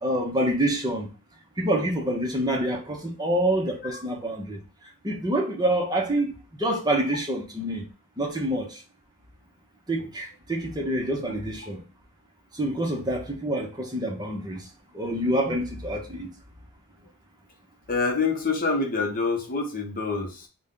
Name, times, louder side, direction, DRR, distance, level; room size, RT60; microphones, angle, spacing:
voice 1, 0.0-1.1 1.6-4.6 5.0-7.8 8.2-8.8 9.9-11.8 12.5-14.7 14.9-16.3, right 1 dB, 20° right, 0.8 m, -27 dB
voice 2, 17.9-20.5, left 4 dB, 40° left, 0.8 m, -27 dB
4.0 x 2.2 x 3.7 m
head